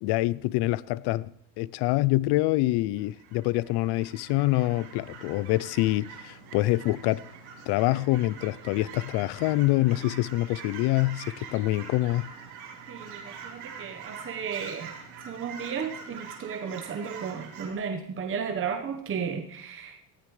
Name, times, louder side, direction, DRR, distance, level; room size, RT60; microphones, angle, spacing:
voice 1, 0.0-1.3 1.6-7.2 7.7-12.3, left 18 dB, 70° left, 0.6 m, -26 dB
Fowl / Chirp tweet, 3.0-17.7, right 6 dB, 65° right, 4.0 m, -44 dB
voice 2, 12.9-14.9 15.3-20.0, right 6 dB, 30° right, 1.2 m, -34 dB
19.5 x 14.0 x 3.3 m
cardioid pair, 125°, 41 cm